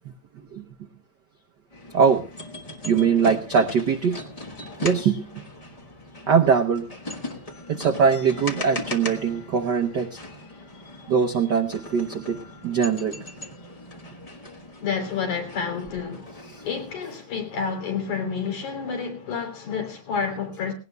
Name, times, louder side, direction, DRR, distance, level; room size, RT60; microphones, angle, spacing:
sound 1, 1.7-17.0, left 2 dB, 60° left, 0.3 m, -39 dB
voice 1, 1.9-2.2 2.8-4.2 4.8-5.3 6.3-6.9 7.7-10.2 11.1-13.2 16.5-16.6, right 6 dB, 85° right, 0.9 m, -22 dB
voice 2, 14.8-16.3 16.6-20.7, left 6 dB, 90° left, 4.9 m, -29 dB
20.5 x 17.5 x 2.2 m
omnidirectional pair, 3.3 m